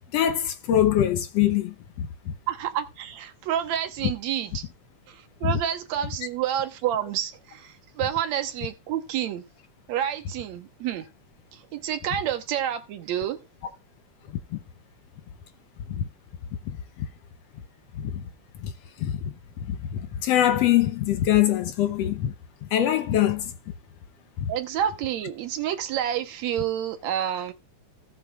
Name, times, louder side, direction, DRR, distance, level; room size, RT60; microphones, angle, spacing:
voice 1, 0.1-2.3 5.4-5.5 16.0-16.1 16.7-17.1 18.0-18.2 18.6-18.7 19.0-19.1 19.7-22.3 22.7-23.5, left 11 dB, 70° left, 1.7 m, -23 dB
voice 2, 2.5-4.6 5.1-9.4 9.9-11.1 11.5-13.4 24.5-27.5, right 10 dB, 75° right, 2.2 m, -29 dB
17.0 x 7.0 x 2.3 m
omnidirectional pair, 3.3 m